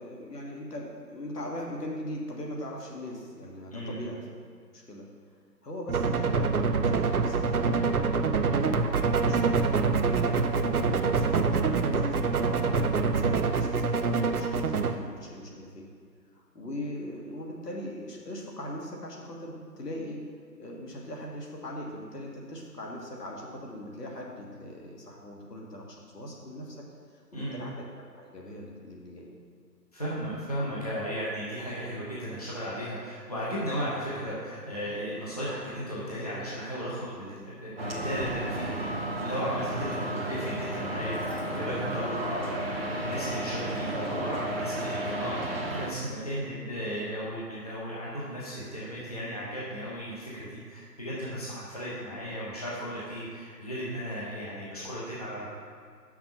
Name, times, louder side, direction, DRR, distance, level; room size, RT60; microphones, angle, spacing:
voice 1, 0.0-4.3 4.7-5.0 5.6-8.1 8.6-15.9 16.3-20.2 20.6-26.8 27.3-27.9 28.2-29.3, left 1 dB, 70° left, -1 dB, 1.8 m, -40 dB
voice 2, 3.7-4.0 27.3-27.6 29.9-55.5, equal, 25° left, -8 dB, 0.9 m, -35 dB
sound 1, 5.9-15.0, right 4 dB, 60° right, 0.6 m, -25 dB
sound 2, 37.8-45.9, right 1 dB, 35° right, 0.9 m, -33 dB
5.9 x 5.8 x 5.4 m, 2.1 s
figure-of-eight pair, 170°, 50 cm